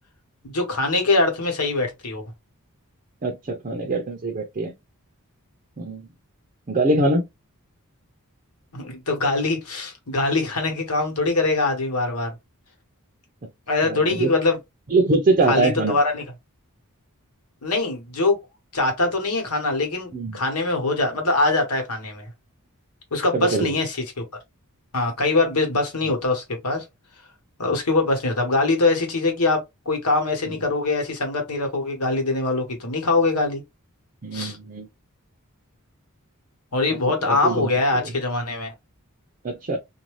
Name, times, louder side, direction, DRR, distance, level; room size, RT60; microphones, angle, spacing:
voice 1, 0.4-2.2 8.7-12.3 13.7-14.6 15.5-16.2 17.6-18.4 18.7-22.3 23.1-24.2 24.9-26.8 27.6-33.6 34.3-34.6 36.7-38.7, left 3 dB, 80° left, 1.2 m, -23 dB
voice 2, 3.2-4.7 5.8-6.1 6.7-7.2 13.8-14.3 14.9-16.0 20.1-20.4 23.3-23.7 34.2-34.9 37.2-37.7 38.0-38.1 39.4-39.8, right 2 dB, 35° right, 0.6 m, -23 dB
2.6 x 2.2 x 3.1 m
head